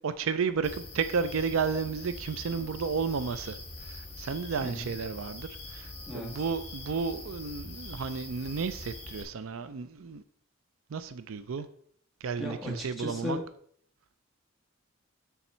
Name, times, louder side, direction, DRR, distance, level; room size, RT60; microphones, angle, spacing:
voice 1, 0.0-10.2 10.9-11.7 12.2-13.4, right 5 dB, 70° right, 12 dB, 0.4 m, -32 dB
sound 1, 0.6-9.2, left 2 dB, 30° left, 1.8 m, -43 dB
voice 2, 4.6-4.9 6.1-6.3 12.4-13.4, left 1 dB, ahead, -2 dB, 1.7 m, -36 dB
6.9 x 6.9 x 4.3 m, 0.63 s
head